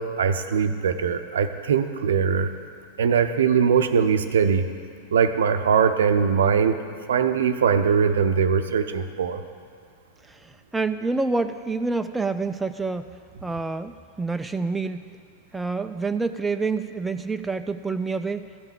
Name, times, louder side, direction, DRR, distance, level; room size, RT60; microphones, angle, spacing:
voice 1, 0.0-2.5 3.0-4.7 5.1-6.8 7.1-9.4, right 6 dB, 65° right, 9 dB, 0.6 m, -21 dB
voice 2, 10.3-15.2 15.5-18.5, right 3 dB, 10° right, 8 dB, 0.4 m, -28 dB
14.0 x 5.6 x 8.9 m, 2.3 s
figure-of-eight pair, 90°, 0 cm